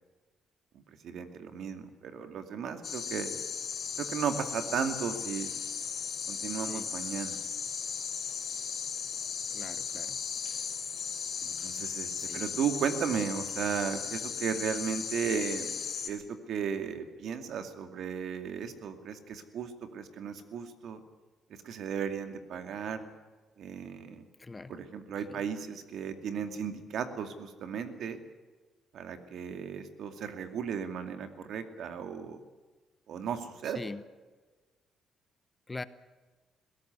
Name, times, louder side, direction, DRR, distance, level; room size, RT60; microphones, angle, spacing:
voice 1, 0.7-3.3 4.0-5.5 6.3-7.4 11.4-15.7 16.0-21.0 21.6-23.0 23.6-24.2 24.7-28.2 28.9-32.4 33.1-33.8, right 7 dB, 70° right, 8 dB, 2.4 m, -35 dB
sound 1, 2.8-16.1, left 6 dB, 50° left, 3.5 m, -36 dB
voice 2, 9.5-10.2 12.1-12.4 24.4-24.8 25.3-25.4 33.6-34.0 35.7-35.8, left 3 dB, 25° left, 14 dB, 1.0 m, -42 dB
21.5 x 17.0 x 9.5 m, 1.3 s
cardioid pair, 90°, 0 cm